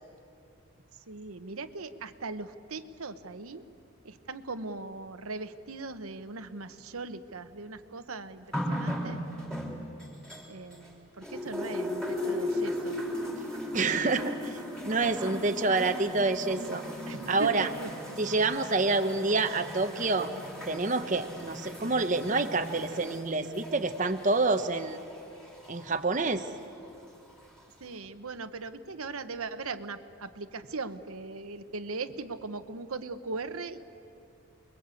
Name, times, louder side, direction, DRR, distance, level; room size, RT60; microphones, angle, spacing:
voice 1, 1.1-3.6 4.0-9.2 10.5-13.0 13.2-13.4 14.0-14.5 17.1-18.2 27.8-33.8, right 3 dB, 90° right, 9 dB, 1.1 m, -39 dB
sound 1, 8.5-10.9 11.2-25.9 26.8-26.9, left 1 dB, 5° left, 3.8 m, -37 dB
voice 2, 13.7-14.4 14.8-16.8 17.3-17.7 18.2-20.3 20.7-25.0 25.7-26.5, right 3 dB, 35° right, 7 dB, 0.9 m, -27 dB
28.5 x 22.0 x 8.4 m, 2.7 s
head